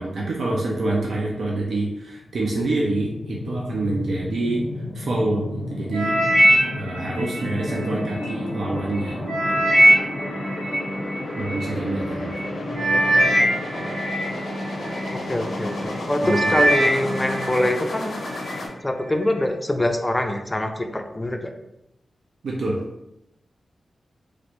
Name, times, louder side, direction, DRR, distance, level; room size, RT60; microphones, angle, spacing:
voice 1, 0.0-4.6 4.9-6.1 6.8-9.7 11.4-12.4 16.2-16.6 22.4-22.8, right 2 dB, 80° right, -3 dB, 0.5 m, -26 dB
sound 1, 2.1-18.7, left 2 dB, 80° left, 0.6 m, -33 dB
sound 2, 5.9-8.3 8.8-11.6 12.3-12.5 12.7-15.1 15.6-15.9 16.2-17.7 18.1-18.5 19.2-19.3, right 1 dB, 50° right, 1.5 m, -21 dB
sound 3, 7.4-17.6, equal, 30° right, 0.7 m, -34 dB
voice 2, 12.7-13.4 15.1-18.2 18.8-21.5, left 1 dB, 15° left, 5 dB, 0.3 m, -25 dB
3.1 x 2.5 x 2.9 m, 0.87 s
wide cardioid pair, 120°, 0 cm